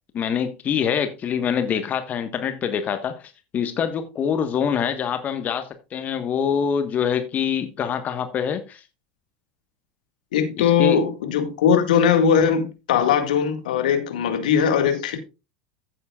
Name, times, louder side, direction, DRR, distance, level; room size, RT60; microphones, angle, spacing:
voice 1, 0.1-3.1 3.5-8.8 10.6-11.0, left 7 dB, 35° left, 1.3 m, -25 dB
voice 2, 10.3-15.2, left 7 dB, 75° left, 1.9 m, -20 dB
15.0 x 7.8 x 2.4 m
hypercardioid pair, 85°, 4 cm